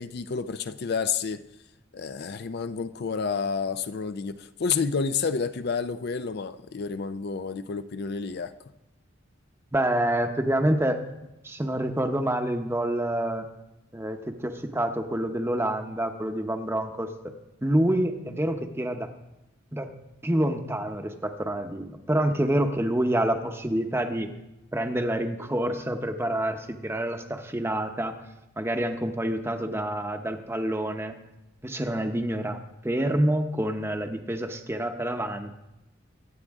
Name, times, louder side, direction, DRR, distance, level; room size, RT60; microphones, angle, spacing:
voice 1, 0.0-1.4 1.9-8.5, left 5 dB, 55° left, 11 dB, 0.5 m, -30 dB
voice 2, 9.7-11.0 11.4-13.5 13.9-17.3 17.6-19.1 19.7-19.9 20.2-24.3 24.7-28.1 28.6-31.1 31.6-35.5, right 1 dB, 10° right, 6 dB, 0.8 m, -27 dB
23.5 x 9.0 x 3.6 m, 0.94 s
head